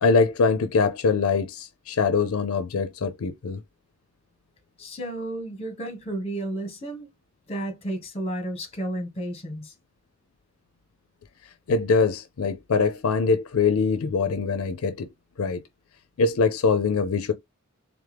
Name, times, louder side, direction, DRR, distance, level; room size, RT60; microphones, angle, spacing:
voice 1, 0.0-3.6 11.7-15.1 15.4-15.6 16.2-17.3, left 4 dB, 75° left, 0.5 m, -23 dB
voice 2, 4.8-7.1 7.5-9.7, right 1 dB, 30° left, 1.5 m, -32 dB
3.5 x 3.5 x 3.3 m
head